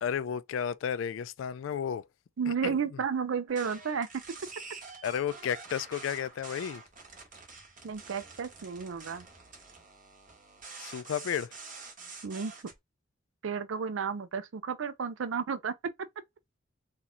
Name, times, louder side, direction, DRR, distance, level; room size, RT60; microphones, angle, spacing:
voice 1, 0.0-2.0 2.6-2.8 5.0-6.8 10.8-11.5, left 8 dB, 80° left, 0.3 m, -32 dB
voice 2, 2.4-4.1 7.8-9.3 12.2-12.5 13.4-15.9, right 6 dB, 80° right, 0.5 m, -32 dB
sound 1, 3.5-12.7, right 4 dB, 45° right, 1.1 m, -47 dB
2.9 x 2.3 x 4.0 m
head